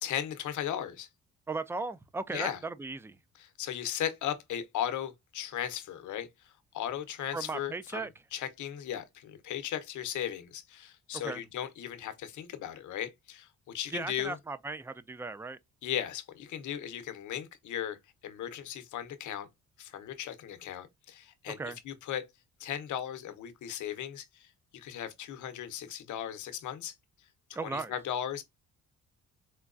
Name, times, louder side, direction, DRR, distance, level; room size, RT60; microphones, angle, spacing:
voice 1, 0.0-1.1 2.3-2.6 3.4-13.5 13.7-14.4 15.8-18.0 18.2-19.5 19.8-21.6 21.8-22.2 22.6-26.9 27.5-28.4, left 10 dB, 75° left, 0.8 m, -37 dB
voice 2, 1.5-3.2 7.3-8.1 11.2-11.4 13.9-15.6 21.6-21.8 27.5-27.9, right 3 dB, 10° right, 0.3 m, -37 dB
4.5 x 2.2 x 2.4 m
cardioid pair, 90°, 30 cm